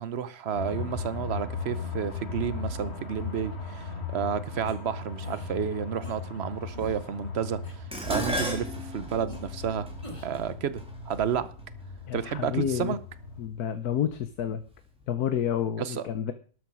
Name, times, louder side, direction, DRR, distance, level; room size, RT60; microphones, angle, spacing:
voice 1, 0.0-9.9 10.2-11.5 12.1-13.0 15.8-16.1, right 8 dB, 50° right, 0.9 m, -31 dB
sound 1, 0.5-13.5, left 4 dB, 45° left, 2.1 m, -38 dB
sound 2, 4.7-4.8 5.2-5.5 6.0-6.1 6.7-7.1 7.6-7.7 8.3-8.7 9.3-9.4 10.0-10.4, left 1 dB, 20° left, 5.4 m, -45 dB
Dishes pots and pans, 7.9-12.3 13.2-13.6 13.9-14.8 15.0-15.1, equal, 5° right, 2.9 m, -36 dB
voice 2, 12.1-12.9 13.4-14.6 15.1-16.3, left 9 dB, 80° left, 1.4 m, -29 dB
12.5 x 8.1 x 6.1 m
omnidirectional pair, 1.6 m